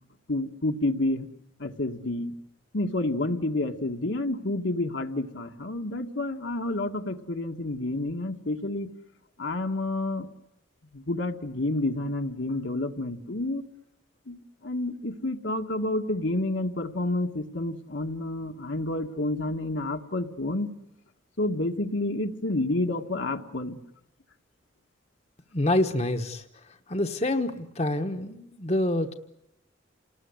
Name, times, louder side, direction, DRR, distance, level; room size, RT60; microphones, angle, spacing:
voice 1, 0.3-1.3 1.6-2.3 2.7-8.9 9.4-10.3 10.9-13.6 14.3-20.7 21.4-23.8, left 2 dB, 70° left, 4 dB, 1.7 m, -29 dB
voice 2, 25.5-26.4 26.9-29.1, left 1 dB, 35° left, 6 dB, 1.2 m, -26 dB
29.0 x 19.5 x 9.7 m, 0.87 s
head